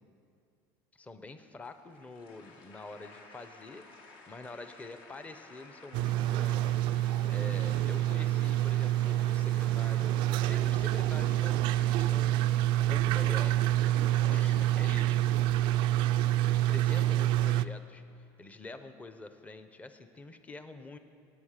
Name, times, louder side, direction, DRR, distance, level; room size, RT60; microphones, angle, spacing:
voice 1, 0.9-3.8 4.3-6.8 7.3-13.7 14.3-15.2 16.5-18.0 18.4-21.0, left 2 dB, 15° left, 9 dB, 0.9 m, -46 dB
sound 1, 1.6-17.7, left 3 dB, 60° left, 2.0 m, -54 dB
sound 2, 5.9-17.7, right 13 dB, 65° right, 0.4 m, -27 dB
18.5 x 8.7 x 6.6 m, 2.5 s
cardioid pair, 125°, 9 cm